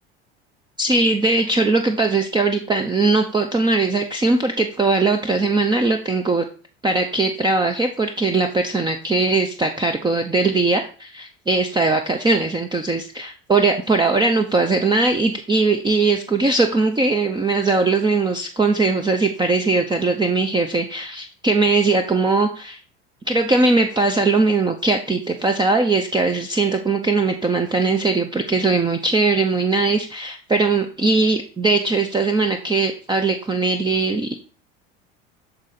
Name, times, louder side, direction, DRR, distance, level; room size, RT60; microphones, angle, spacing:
voice 1, 0.8-6.4 6.8-22.8 23.3-34.3, right 3 dB, 15° right, 6 dB, 0.7 m, -20 dB
7.9 x 4.0 x 4.2 m, 0.39 s
hypercardioid pair, 90°, 30 cm